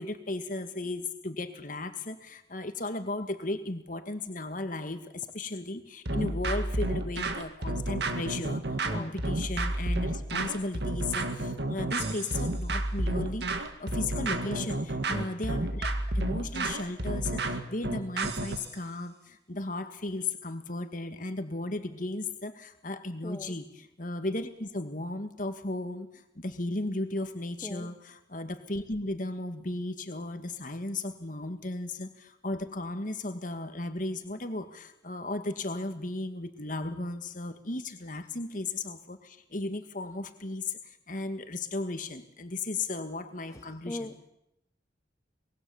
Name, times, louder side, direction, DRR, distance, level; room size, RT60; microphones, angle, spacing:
voice 1, 0.0-15.9 16.1-44.1, left 2 dB, 45° left, 8 dB, 1.9 m, -35 dB
sound 1, 6.1-18.7, right 2 dB, 60° right, 1.9 m, -31 dB
voice 2, 23.2-23.5 27.6-27.9 43.5-44.3, left 1 dB, 15° left, 5 dB, 0.9 m, -40 dB
24.0 x 21.5 x 7.2 m, 0.85 s
head